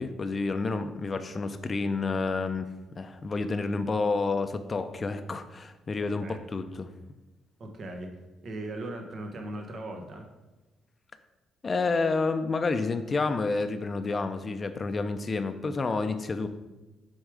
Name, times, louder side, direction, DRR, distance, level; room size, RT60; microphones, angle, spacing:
voice 1, 0.0-2.7 3.0-6.9 11.6-16.5, left 3 dB, 35° left, 9 dB, 0.5 m, -29 dB
voice 2, 6.0-6.4 7.6-10.3, right 1 dB, 55° right, 3 dB, 1.1 m, -39 dB
6.4 x 3.6 x 4.9 m, 1.1 s
cardioid pair, 90°, 0 cm